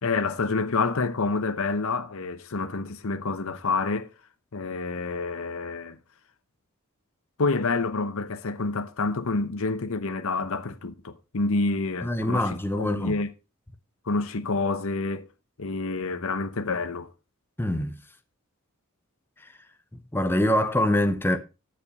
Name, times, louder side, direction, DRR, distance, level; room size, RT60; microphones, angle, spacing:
voice 1, 0.0-4.1 4.5-6.0 7.4-13.3 14.1-15.3 15.6-17.1, left 3 dB, 65° left, 0.9 m, -28 dB
voice 2, 12.0-13.2 17.6-17.9 20.1-21.4, left 1 dB, 10° left, 0.7 m, -24 dB
14.0 x 5.3 x 4.1 m
head